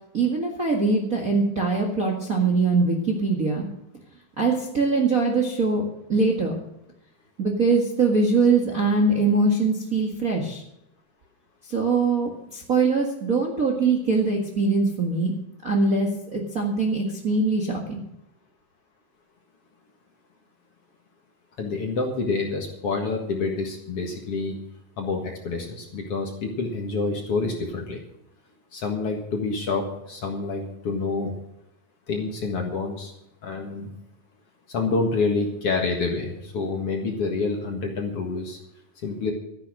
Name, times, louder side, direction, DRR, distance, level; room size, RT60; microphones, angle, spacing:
voice 1, 0.1-3.7 4.4-5.8 6.1-6.5 7.4-10.6 11.7-15.3 15.6-18.0, right 3 dB, 35° right, 0 dB, 1.4 m, -22 dB
voice 2, 21.6-24.6 25.0-28.0 28.7-31.3 32.1-33.1 33.4-33.9 34.7-38.6 39.0-39.3, left 3 dB, 50° left, 2 dB, 2.2 m, -27 dB
13.0 x 10.0 x 6.3 m, 0.83 s
omnidirectional pair, 4.0 m